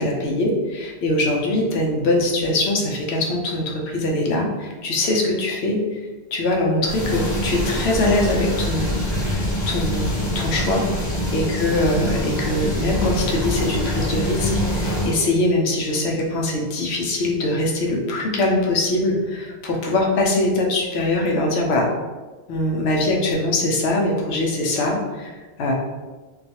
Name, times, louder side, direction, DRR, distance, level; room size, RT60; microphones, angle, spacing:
voice 1, 0.0-6.0 6.3-10.8 11.3-21.9 22.5-25.7, left 2 dB, 85° left, 0 dB, 0.9 m, -22 dB
Motor and bubbles in a petting tank at an aquarium, 6.8-15.1, equal, 50° left, 0.9 m, -24 dB
2.3 x 2.3 x 2.7 m, 1.3 s
omnidirectional pair, 1.1 m